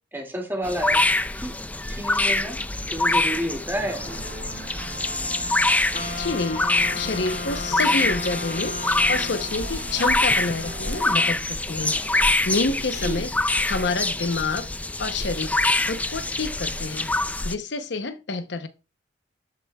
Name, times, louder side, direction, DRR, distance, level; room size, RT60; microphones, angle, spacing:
voice 1, 0.1-1.1 1.4-1.5 1.9-2.6 2.9-4.0 13.0-13.2, equal, 10° right, 2.2 m, -30 dB
sound 1, 0.6-17.5, left 2 dB, 10° left, 0.3 m, -25 dB
sound 2, 3.7-11.3, right 3 dB, 60° right, 1.5 m, -40 dB
Wind instrument woodwind instrument, 5.9-9.8, left 4 dB, 40° left, 1.3 m, -35 dB
voice 2, 6.2-6.7 7.0-8.8 9.1-12.0 12.5-13.4 13.7-14.7 15.0-15.6 15.9-17.1 17.4-18.7, left 3 dB, 70° left, 0.7 m, -28 dB
11.5 x 8.2 x 2.3 m
head